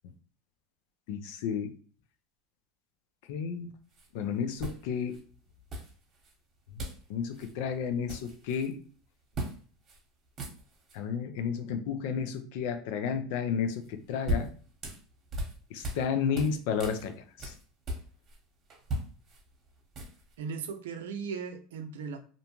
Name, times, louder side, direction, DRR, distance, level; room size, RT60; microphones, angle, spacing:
voice 1, 1.1-1.8 3.3-3.7 4.1-5.2 6.7-8.8 10.9-14.5 15.7-17.5, left 7 dB, 70° left, 0.5 m, -32 dB
sound 1, 3.9-4.1 4.6-5.2 5.7-6.3 6.8-7.1 7.3-7.5 7.8-8.7 9.3-9.6 9.9-10.0 10.3-11.0 13.8-16.1 16.3-18.4 18.7-20.3, right 1 dB, 40° right, 1.0 m, -37 dB
voice 2, 20.4-22.2, right 5 dB, 85° right, 0.4 m, -37 dB
2.6 x 2.2 x 2.9 m
supercardioid pair, 110°, 0 cm